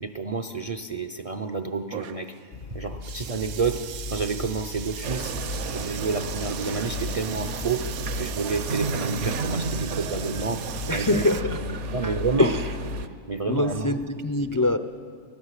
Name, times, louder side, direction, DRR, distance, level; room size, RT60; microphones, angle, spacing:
voice 1, 0.0-2.3 2.7-3.8 4.1-5.4 5.7-7.8 8.2-10.6 10.9-11.2 11.9-12.5 13.3-14.0, right 4 dB, 40° right, 7 dB, 0.5 m, -29 dB
sound 1, 1.9-11.4, right 9 dB, 85° right, 1.2 m, -39 dB
sound 2, 2.5-13.1, left 4 dB, 50° left, 0.7 m, -36 dB
sound 3, 5.0-13.1, right 5 dB, 60° right, 1.2 m, -33 dB
voice 2, 10.9-12.8 13.4-14.8, left 1 dB, 30° left, 9 dB, 0.3 m, -25 dB
23.5 x 16.5 x 8.2 m, 2.1 s
omnidirectional pair, 1.5 m